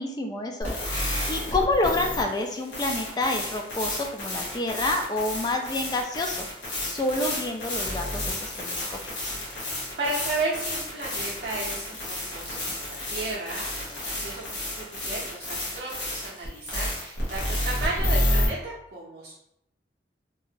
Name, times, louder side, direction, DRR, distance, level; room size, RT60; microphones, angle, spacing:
voice 1, 0.0-6.5 6.8-9.4, left 2 dB, 25° left, 3 dB, 0.3 m, -28 dB
sound 1, 0.6-18.5, left 1 dB, 85° left, 1.1 m, -31 dB
voice 2, 9.5-19.3, right 2 dB, 55° right, -6 dB, 0.5 m, -34 dB
2.8 x 2.4 x 2.7 m, 0.80 s
head